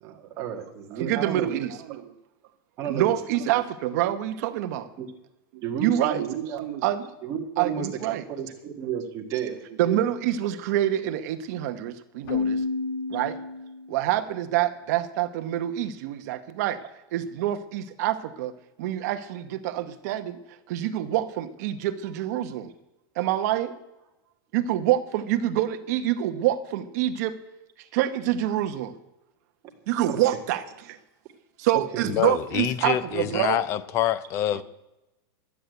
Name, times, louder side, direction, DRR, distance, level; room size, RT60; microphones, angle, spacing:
voice 1, 0.0-1.6 2.8-3.1 5.0-5.1 5.6-6.6 7.2-7.9 8.3-9.6 9.9-10.1 30.1-30.4 31.9-32.1, right 8 dB, 25° right, 1 dB, 1.7 m, -32 dB
voice 2, 1.0-2.1 2.9-4.9 5.5-7.1 7.6-8.2 9.8-12.6 13.1-13.4 13.9-16.8 17.1-18.5 18.8-20.4 20.7-22.7 23.2-23.8 24.5-27.4 27.9-28.9 29.9-31.0 31.6-33.6 34.5-34.6, right 12 dB, 40° right, 9 dB, 1.0 m, -26 dB
Keyboard (musical), 12.3-14.1, left 4 dB, 50° left, 1.3 m, -30 dB
voice 3, 32.1-34.6, left 12 dB, 20° left, 17 dB, 0.5 m, -26 dB
12.5 x 8.2 x 9.0 m, 0.98 s
supercardioid pair, 180°, 13 cm